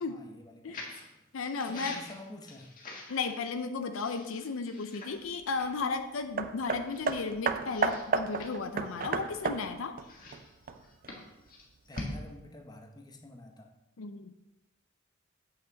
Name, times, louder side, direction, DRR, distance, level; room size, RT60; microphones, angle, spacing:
voice 1, 0.0-1.1 1.7-2.7 11.9-13.7, left 2 dB, 20° left, 3 dB, 0.8 m, -49 dB
sound 1, 0.7-1.1 1.5-3.6 4.0-5.3 5.5-5.7 6.3-6.4 6.9-7.3 7.7-9.4 10.0-12.1, left 2 dB, 40° left, 1.5 m, -45 dB
voice 2, 1.3-2.0 3.1-10.0 14.0-14.3, left 4 dB, 70° left, 8 dB, 0.5 m, -34 dB
Hammer, 6.4-11.1 11.9-12.0, right 5 dB, 45° right, 0.4 m, -33 dB
8.0 x 6.0 x 4.0 m, 0.98 s
head